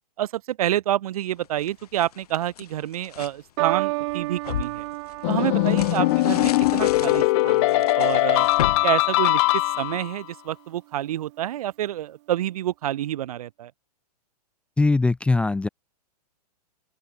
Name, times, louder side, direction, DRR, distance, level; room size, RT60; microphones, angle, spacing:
voice 1, 0.2-4.8 5.3-8.5 8.8-13.7, right 12 dB, 65° right, 1.6 m, -28 dB
sound 1, 1.4-3.4 3.9-10.0, left 10 dB, 70° left, 2.6 m, -36 dB
sound 2, 3.6-10.1 10.9-11.3, right 24 dB, 45° right, 0.9 m, -33 dB
sound 3, 5.2-10.2, left 22 dB, 45° left, 0.7 m, -21 dB
voice 2, 14.8-15.7, left 3 dB, 5° left, 0.5 m, -20 dB
open air
hypercardioid pair, 115°, 20 cm